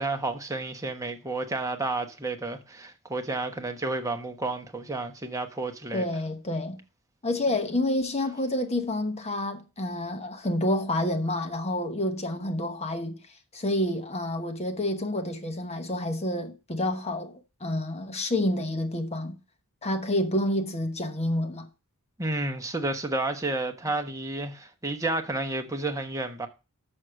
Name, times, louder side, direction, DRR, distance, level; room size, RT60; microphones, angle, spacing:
voice 1, 0.0-6.0 22.2-26.5, right 2 dB, 15° right, 1.2 m, -31 dB
voice 2, 5.9-6.8 7.2-13.2 13.5-19.4 19.8-21.7, left 1 dB, 30° left, 1.0 m, -28 dB
6.4 x 6.3 x 6.4 m
head